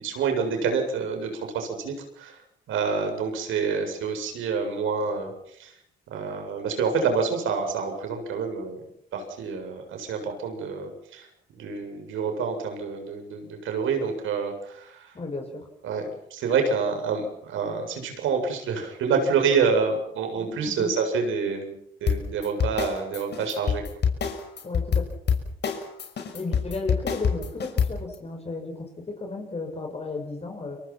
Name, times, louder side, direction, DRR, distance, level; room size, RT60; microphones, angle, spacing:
voice 1, 0.0-2.4 2.7-5.3 5.6-5.7 6.1-8.8 9.1-11.3 11.6-15.1 15.8-21.7 22.0-23.8, right 5 dB, 80° right, 5 dB, 7.7 m, -27 dB
voice 2, 15.1-15.7 20.4-20.9 24.6-25.1 26.3-30.8, left 3 dB, 30° left, 3 dB, 6.3 m, -34 dB
sound 1, 22.1-28.1, left 7 dB, 60° left, 6.1 m, -25 dB
30.0 x 24.5 x 6.0 m, 0.73 s
cardioid pair, 90°, 20 cm